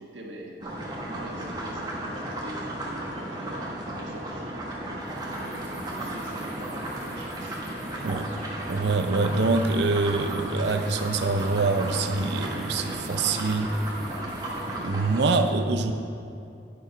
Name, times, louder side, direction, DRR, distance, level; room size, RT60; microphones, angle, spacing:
voice 1, 0.0-4.7 5.2-8.2, right 1 dB, 90° right, 0 dB, 1.4 m, -44 dB
sound 1, 0.6-15.3, right 1 dB, 20° right, 1.3 m, -34 dB
sound 2, 5.0-14.9, right 2 dB, 40° right, 1.5 m, -48 dB
voice 2, 8.0-8.4 8.7-13.7 14.8-15.9, right 3 dB, 70° right, 7 dB, 0.5 m, -25 dB
9.5 x 6.4 x 5.2 m, 2.5 s
head